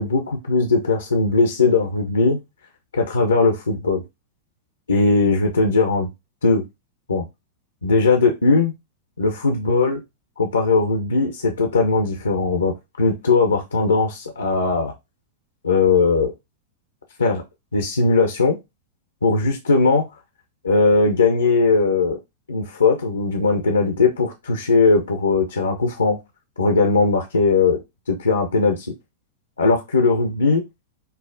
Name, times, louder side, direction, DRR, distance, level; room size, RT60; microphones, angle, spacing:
voice 1, 0.0-2.4 2.9-4.0 4.9-6.1 6.4-6.6 7.1-7.2 7.8-8.7 9.2-10.0 10.4-12.7 13.0-14.9 15.6-16.3 17.2-17.4 17.7-18.6 19.2-20.1 20.6-22.2 22.5-26.2 26.6-27.8 28.1-28.9 29.6-30.6, left 3 dB, 85° left, 4 dB, 0.6 m, -19 dB
5.4 x 2.0 x 2.5 m, 0.22 s
figure-of-eight pair, 95°, 0 cm